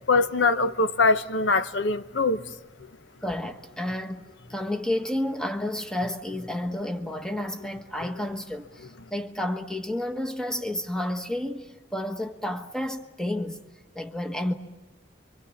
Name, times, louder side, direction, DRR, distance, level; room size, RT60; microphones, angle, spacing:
voice 1, 0.1-2.4, left 3 dB, 85° left, 0.9 m, -22 dB
voice 2, 3.2-4.2 4.5-13.6 13.9-14.5, left 1 dB, 5° left, 1.3 m, -31 dB
29.0 x 25.0 x 7.2 m
head